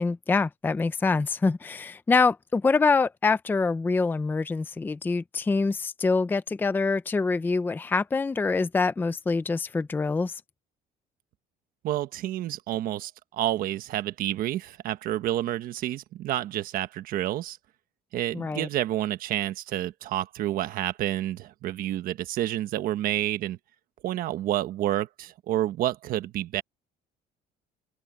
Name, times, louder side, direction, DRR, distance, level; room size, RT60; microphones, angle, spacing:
voice 1, 0.0-10.4 18.3-18.7, left 4 dB, 10° left, 0.5 m, -25 dB
voice 2, 11.8-17.6 18.1-23.6 24.0-26.6, right 13 dB, 60° right, 1.2 m, -29 dB
open air
cardioid pair, 155°, 16 cm